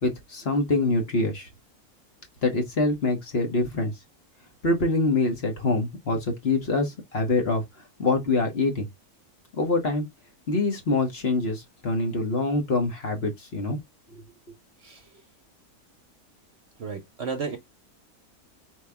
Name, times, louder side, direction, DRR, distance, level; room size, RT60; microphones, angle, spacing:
voice 1, 0.0-1.5 2.4-3.9 4.6-7.6 8.0-8.9 9.6-10.0 10.5-13.8, left 2 dB, 45° left, 1.3 m, -25 dB
voice 2, 14.8-15.1 16.8-17.6, right 5 dB, 50° right, 1.0 m, -33 dB
4.7 x 2.9 x 3.4 m
omnidirectional pair, 1.6 m